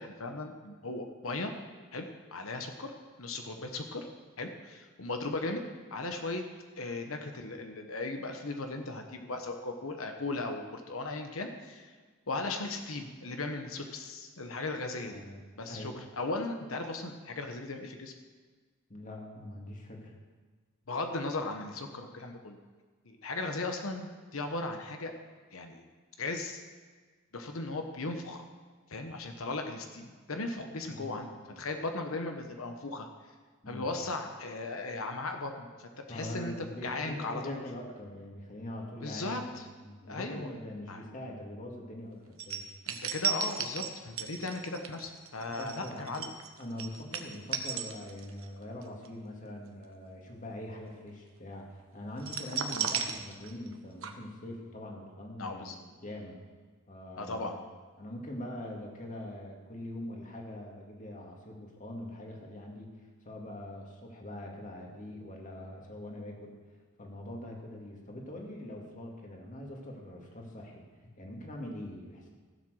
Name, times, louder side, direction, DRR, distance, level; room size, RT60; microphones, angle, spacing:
voice 1, 0.0-1.5 1.9-2.9 3.2-4.0 4.4-5.6 5.9-6.4 6.8-12.0 12.3-15.2 15.6-18.1 20.9-22.6 23.0-25.1 25.5-25.8 26.2-26.6 27.3-28.4 28.9-31.3 31.6-33.1 33.7-36.5 36.8-37.6 39.0-39.7 40.1-40.5 40.9-41.0 42.9-46.3 55.4-55.8 57.2-57.5, left 2 dB, 75° left, 5 dB, 1.1 m, -37 dB
voice 2, 15.1-15.4 15.7-16.0 18.9-20.1 30.9-31.6 33.6-33.9 36.1-39.6 39.8-42.6 45.6-46.1 46.6-56.4 56.9-57.5 58.0-62.9 63.2-66.5 67.0-72.3, left 1 dB, 35° left, 0 dB, 2.3 m, -43 dB
sound 1, 42.4-48.5 48.8-49.1 52.2-53.8 54.0-54.1, right 7 dB, 70° right, 1.1 m, -35 dB
16.0 x 7.6 x 6.4 m, 1.4 s
head